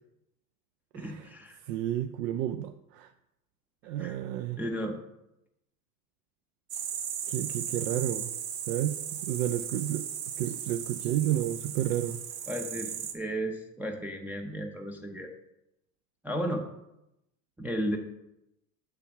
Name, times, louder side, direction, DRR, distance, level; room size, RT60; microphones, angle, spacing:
voice 1, 0.9-1.6 4.0-4.2 4.6-5.0 12.5-15.3 16.2-16.6 17.6-18.0, equal, 5° right, 1 dB, 0.6 m, -34 dB
voice 2, 1.7-3.1 3.8-4.6 7.3-8.3 8.7-9.0 9.2-10.1 10.4-12.2, right 12 dB, 70° right, 9 dB, 0.6 m, -31 dB
sound 1, 6.7-13.1, right 8 dB, 45° right, 1.1 m, -36 dB
8.3 x 3.5 x 5.7 m, 0.87 s
supercardioid pair, 100°, 49 cm